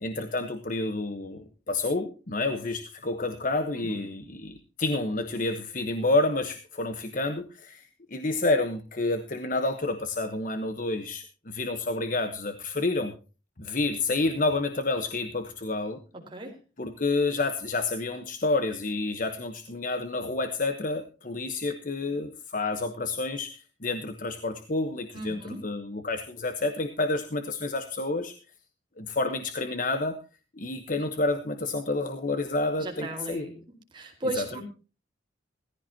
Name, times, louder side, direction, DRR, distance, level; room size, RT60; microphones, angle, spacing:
voice 1, 0.0-13.1 13.6-16.0 16.8-28.3 29.0-30.2 30.6-33.5 34.4-34.6, left 2 dB, 45° left, 8 dB, 1.2 m, -29 dB
voice 2, 25.1-25.6 32.8-33.5 33.9-34.6, right 1 dB, 25° right, 2 dB, 4.4 m, -35 dB
17.5 x 15.0 x 2.9 m, 0.34 s
head